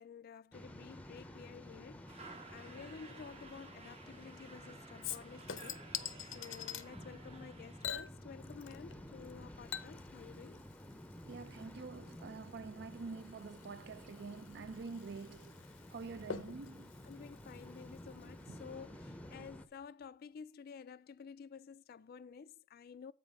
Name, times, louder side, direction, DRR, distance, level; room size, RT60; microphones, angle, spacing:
voice 1, 0.0-5.8 6.3-10.6 17.0-23.1, left 6 dB, 50° left, 0.3 m, -52 dB
Waves surf, 0.5-19.7, left 1 dB, 5° left, 0.6 m, -53 dB
sound 1, 2.1-7.9, right 4 dB, 35° right, 0.9 m, -55 dB
Chink clink / Liquid, 5.0-6.9 7.8-9.0 9.2-18.3 18.6-18.7, left 9 dB, 80° left, 0.7 m, -47 dB
voice 2, 11.3-15.6 15.9-17.0 18.5-18.6, right 4 dB, 60° right, 0.5 m, -47 dB
8.1 x 5.1 x 5.4 m
head